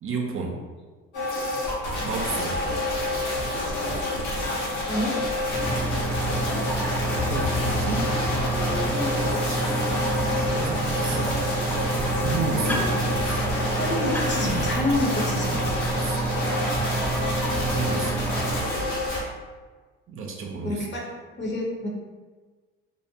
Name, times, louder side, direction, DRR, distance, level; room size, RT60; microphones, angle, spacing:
voice 1, 0.0-0.7 2.1-2.6 7.2-8.2 10.6-11.4 12.2-13.5 16.0-16.2 17.6-18.2 20.1-20.8, right 4 dB, 45° right, 1 dB, 0.5 m, -32 dB
sound 1, 1.1-19.2, left 1 dB, 80° left, 0.8 m, -28 dB
voice 2, 4.9-5.2 12.6-12.8 13.7-15.6 20.6-21.0 21.4-21.9, left 2 dB, 40° left, -2 dB, 0.7 m, -27 dB
sound 2, 5.5-18.6, right 2 dB, 5° left, 0.4 m, -28 dB
2.7 x 2.1 x 2.6 m, 1.4 s
supercardioid pair, 65°, 29 cm